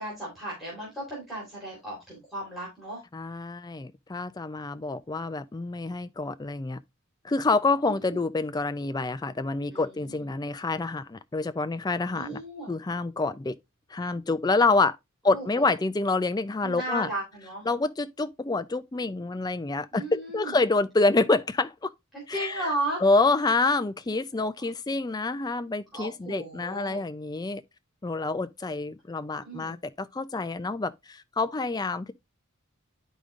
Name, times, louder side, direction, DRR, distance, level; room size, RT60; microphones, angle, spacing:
voice 1, 0.0-3.0 7.8-8.2 9.7-10.3 12.1-12.8 15.3-15.7 16.6-17.7 19.9-20.5 22.1-23.0 25.9-27.0 29.4-29.8, right 1 dB, ahead, 3.7 m, -35 dB
voice 2, 3.1-6.8 7.2-12.4 12.7-13.6 13.9-15.0 15.2-17.1 17.7-21.9 22.3-22.7 23.0-27.6 28.0-32.1, left 3 dB, 20° left, 0.4 m, -27 dB
11.0 x 5.1 x 2.4 m
head